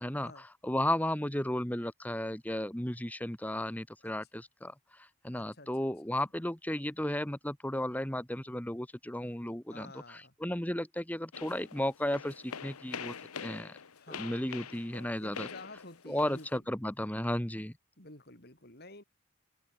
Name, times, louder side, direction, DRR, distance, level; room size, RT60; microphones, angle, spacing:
voice 1, 0.0-4.7 5.2-13.1 13.4-13.7 14.1-15.5 16.1-17.7, left 1 dB, 5° left, 1.1 m, -34 dB
voice 2, 5.3-5.7 9.7-10.3 14.0-14.4 15.2-16.6 18.0-19.0, left 2 dB, 45° left, 5.4 m, -50 dB
sound 1, 11.3-16.6, left 6 dB, 90° left, 1.0 m, -44 dB
open air
head